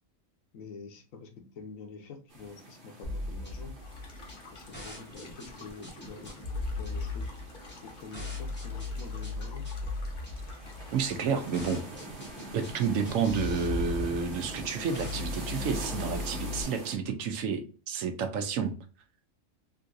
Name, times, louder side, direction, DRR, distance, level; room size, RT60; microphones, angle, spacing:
voice 1, 0.5-3.7 4.5-6.4 6.8-7.3 7.8-9.6, left 4 dB, 75° left, 4 dB, 1.2 m, -46 dB
sound 1, 2.3-17.0, right 2 dB, 45° right, 1.0 m, -45 dB
sound 2, 3.0-16.6, left 3 dB, 10° left, 0.8 m, -38 dB
sound 3, 3.8-11.8, left 3 dB, 45° left, 0.8 m, -52 dB
voice 2, 10.9-11.8 12.5-18.7, right 6 dB, 75° right, 8 dB, 1.0 m, -30 dB
3.7 x 2.6 x 2.4 m, 0.36 s
omnidirectional pair, 1.4 m